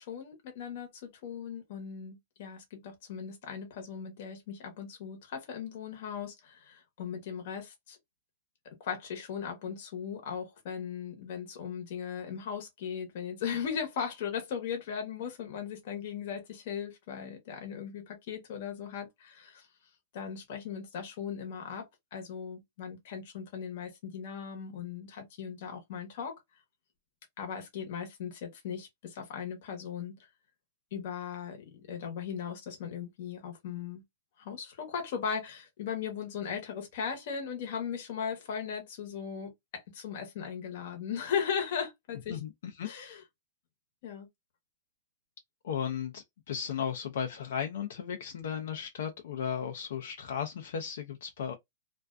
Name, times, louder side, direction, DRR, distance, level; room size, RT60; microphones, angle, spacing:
voice 1, 0.0-8.0 8.6-19.7 20.1-26.4 27.4-30.2 30.9-34.0 34.4-42.4 42.8-43.2 44.0-44.3, left 7 dB, 55° left, 0.9 m, -38 dB
voice 2, 42.3-42.9 45.6-51.6, left 8 dB, 70° left, 0.4 m, -35 dB
2.4 x 2.2 x 2.4 m
supercardioid pair, 155°, 0 cm